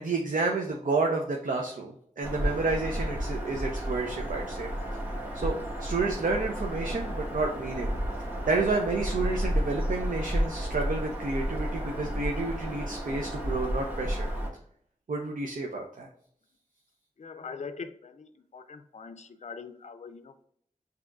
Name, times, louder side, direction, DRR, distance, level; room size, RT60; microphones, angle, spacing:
voice 1, 0.0-4.7 5.3-7.9 8.5-14.3 15.1-16.1, right 3 dB, 70° right, 1 dB, 0.6 m, -30 dB
Bird vocalization bird call bird song, 2.2-14.5, equal, 15° right, 1.2 m, -32 dB
voice 2, 17.2-18.3 18.5-20.4, left 5 dB, 55° left, 10 dB, 0.4 m, -42 dB
6.0 x 2.8 x 2.4 m, 0.66 s
wide cardioid pair, 50°, 14 cm